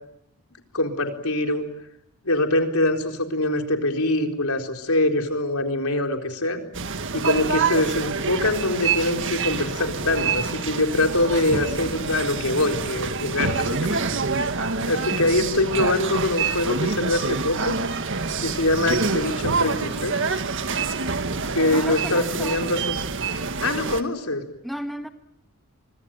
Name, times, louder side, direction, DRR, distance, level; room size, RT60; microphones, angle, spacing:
voice 1, 0.7-1.7 2.2-6.6 7.1-14.0 14.8-17.8 18.4-20.1 21.5-23.0 23.6-24.4, left 2 dB, 75° left, 4 dB, 4.2 m, -24 dB
sound 1, 6.7-24.0, right 4 dB, 60° right, 1.8 m, -26 dB
voice 2, 21.7-22.6 24.6-25.1, equal, ahead, 6 dB, 1.6 m, -33 dB
25.5 x 25.0 x 9.0 m, 0.78 s
head